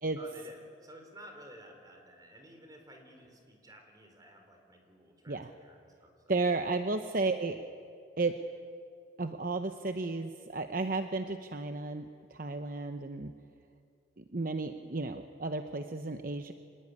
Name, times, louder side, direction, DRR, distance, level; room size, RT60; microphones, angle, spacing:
voice 1, 0.2-6.1, right 1 dB, 20° right, 3 dB, 4.2 m, -53 dB
voice 2, 6.3-7.6 8.2-8.4 9.2-12.0 12.3-13.3 14.2-16.5, right 3 dB, 50° right, 7 dB, 0.9 m, -33 dB
26.0 x 19.5 x 9.7 m, 2.4 s
head